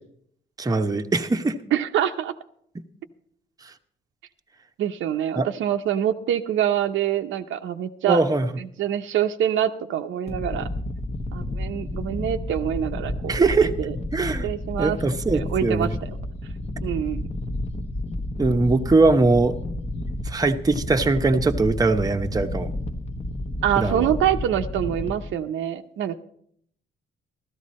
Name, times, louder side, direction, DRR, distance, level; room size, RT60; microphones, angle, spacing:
voice 1, 0.6-1.5 5.4-5.5 8.1-8.5 13.3-13.7 14.1-14.5 14.8-16.0 18.4-19.6 20.2-22.7 23.8-24.1, right 3 dB, 20° right, 5 dB, 0.8 m, -21 dB
voice 2, 1.7-2.3 4.8-8.2 8.6-10.7 11.3-13.4 13.8-14.0 14.4-15.0 15.3-16.1 16.8-17.3 23.6-26.1, right 10 dB, 75° right, 7 dB, 0.7 m, -25 dB
sound 1, 10.3-25.3, left 1 dB, 30° left, 0.9 m, -31 dB
14.5 x 13.0 x 4.2 m, 0.67 s
cardioid pair, 90°, 20 cm